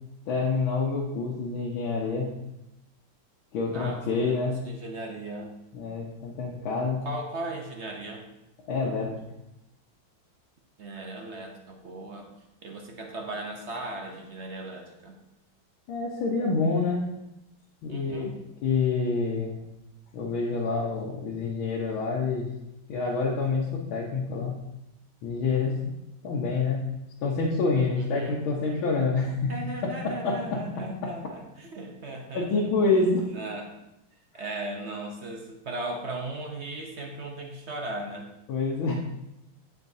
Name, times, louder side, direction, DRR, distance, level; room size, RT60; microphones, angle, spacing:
voice 1, 0.3-2.3 3.5-4.6 5.7-7.0 8.7-9.2 15.9-17.1 17.8-18.3 18.6-19.6 20.1-22.5 22.9-24.6 25.2-25.8 26.2-26.9 27.2-29.5 29.8-30.6 31.0-31.1 32.3-33.2 38.5-39.0, left 4 dB, 80° left, -3 dB, 1.9 m, -27 dB
voice 2, 3.7-5.5 7.0-8.3 10.8-12.3 12.6-15.2 17.9-18.4 28.0-28.4 29.5-32.7 33.3-33.8 34.3-38.3, right 2 dB, 65° right, 2 dB, 0.7 m, -37 dB
15.0 x 5.2 x 2.7 m, 0.90 s
omnidirectional pair, 2.2 m